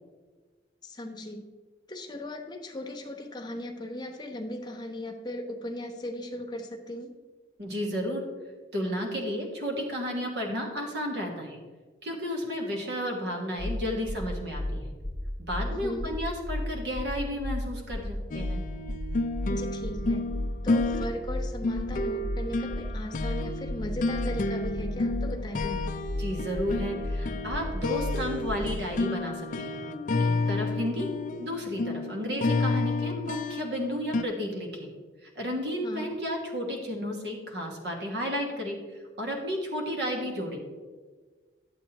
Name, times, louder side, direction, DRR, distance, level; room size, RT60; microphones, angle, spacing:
voice 1, 0.8-1.5 1.9-7.1 15.7-16.1 19.5-20.2 20.6-25.9 35.8-36.1, left 1 dB, 25° left, 2 dB, 0.8 m, -37 dB
voice 2, 7.6-8.2 8.7-11.6 12.0-14.9 15.4-18.6 25.6-25.8 26.2-29.8 30.2-31.1 31.4-34.9 35.2-38.8 39.2-40.6, equal, 70° right, 1 dB, 1.4 m, -32 dB
sound 1, 13.6-13.7 14.1-14.2 14.5-14.7 15.0-15.2 15.5-15.7 16.0-16.1 16.5-16.6 16.9-17.1 17.4-17.6 17.9-18.1 18.4-18.5 18.9-19.0 19.3-19.5 19.8-20.0 20.3-20.5 20.8-20.9 21.3-21.4 21.7-21.9 22.2-22.4 22.7-22.9 23.2-23.3 23.7-23.8 24.1-24.3 24.6-24.8 25.1-25.3 25.6-25.7 26.1-26.2 26.5-26.7 27.0-27.2 27.5-27.7 28.0-28.1 28.5-28.6, left 1 dB, 50° right, 1.4 m, -33 dB
sound 2, 18.3-34.2, left 2 dB, 45° left, 0.4 m, -31 dB
10.5 x 8.1 x 2.9 m, 1.4 s
head